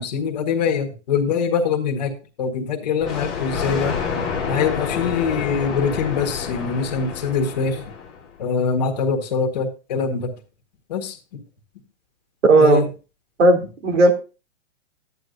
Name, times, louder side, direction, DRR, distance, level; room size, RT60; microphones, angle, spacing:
voice 1, 0.0-2.1 2.4-3.9 4.5-7.8 8.4-10.3 10.9-11.2 12.6-12.8, left 6 dB, 35° left, 4 dB, 1.6 m, -23 dB
Thunder, 3.0-8.3, left 6 dB, ahead, 0.5 m, -28 dB
voice 2, 12.5-12.8 13.4-14.1, right 2 dB, 80° right, 4 dB, 3.3 m, -15 dB
13.0 x 9.5 x 2.6 m, 0.32 s
hypercardioid pair, 175°, 37 cm